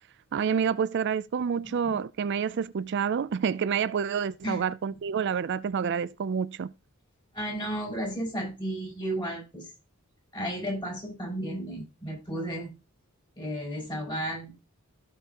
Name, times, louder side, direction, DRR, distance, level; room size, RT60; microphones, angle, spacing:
voice 1, 0.3-6.7, right 7 dB, 55° right, 0.4 m, -28 dB
voice 2, 1.6-2.0 4.4-4.7 7.3-9.7 10.3-12.7 13.4-14.5, right 1 dB, 20° left, 6.1 m, -33 dB
16.0 x 5.8 x 2.9 m
head